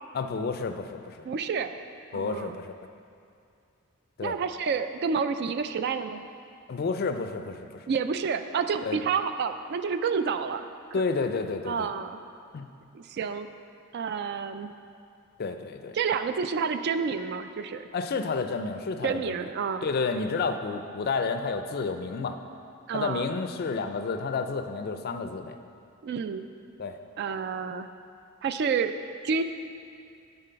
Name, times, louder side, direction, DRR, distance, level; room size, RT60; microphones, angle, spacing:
voice 1, 0.1-1.2 2.1-2.7 4.2-4.4 6.7-7.8 8.8-9.0 10.9-11.9 12.5-12.7 15.4-16.0 17.9-19.3 19.8-22.4 22.9-25.6 26.8-27.0, left 4 dB, 45° left, 7 dB, 0.4 m, -30 dB
voice 2, 1.2-1.7 2.1-2.6 4.2-6.2 7.9-10.6 11.0-11.1 11.7-12.2 12.9-13.5 13.9-14.7 15.9-17.9 19.0-19.9 22.9-23.3 26.0-26.5 27.2-27.9 28.4-29.0 29.2-29.4, right 6 dB, 50° right, 9 dB, 0.3 m, -29 dB
8.9 x 3.9 x 5.6 m, 2.4 s
head